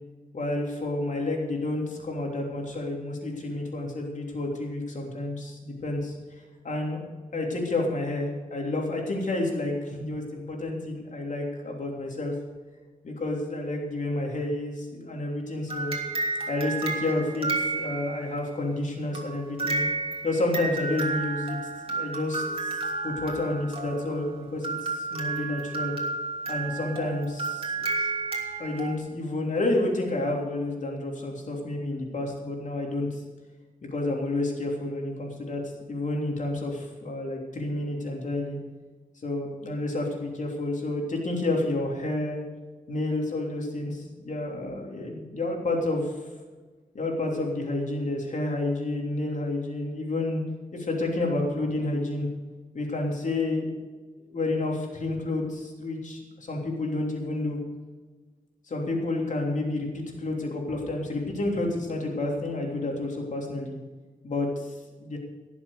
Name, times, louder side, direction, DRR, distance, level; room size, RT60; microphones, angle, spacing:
voice 1, 0.3-6.1 6.6-7.0 7.3-12.3 13.0-15.9 16.5-19.9 20.2-21.6 21.9-25.9 26.5-27.9 28.6-33.2 33.9-35.6 35.9-38.6 39.2-42.4 42.9-46.2 46.9-50.4 50.7-52.3 52.7-53.7 54.3-57.6 58.7-63.8 64.2-65.2, left 2 dB, 60° left, 0 dB, 3.3 m, -30 dB
sound 1, 15.7-18.4 19.1-28.9, right 3 dB, 40° right, 2.8 m, -32 dB
17.5 x 7.2 x 6.8 m, 1.4 s
wide cardioid pair, 90°, 15 cm